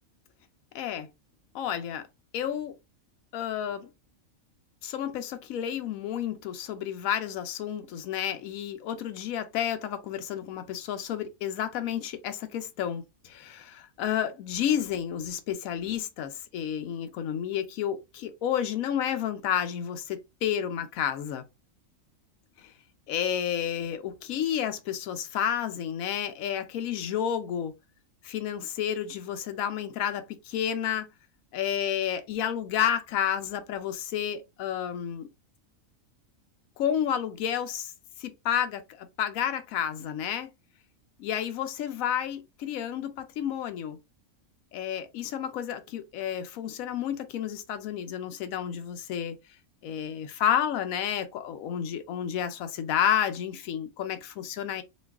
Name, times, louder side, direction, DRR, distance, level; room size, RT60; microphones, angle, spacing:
voice 1, 0.7-1.1 1.5-2.0 2.3-2.7 3.3-3.9 4.8-21.4 22.6-22.7 23.1-27.7 28.2-31.1 31.5-35.3 36.8-37.9 38.2-40.5 41.2-44.0 44.7-49.3 49.8-54.8, left 9 dB, 85° left, 1.0 m, -31 dB
3.1 x 2.3 x 3.3 m
omnidirectional pair, 1.4 m